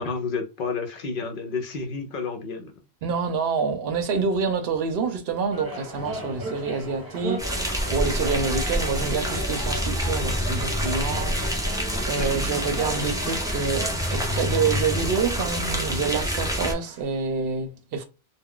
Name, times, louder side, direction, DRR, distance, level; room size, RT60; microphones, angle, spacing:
voice 1, 0.0-2.7 12.2-12.5, left 4 dB, 60° left, 0.7 m, -30 dB
voice 2, 3.0-18.0, right 5 dB, 70° right, 0.8 m, -27 dB
sound 1, 5.5-17.0, equal, 20° right, 0.8 m, -38 dB
sound 2, 6.0-14.2, right 2 dB, 25° left, 0.7 m, -44 dB
sound 3, 7.4-16.7, equal, 5° right, 0.4 m, -27 dB
2.3 x 2.2 x 3.6 m
omnidirectional pair, 1.1 m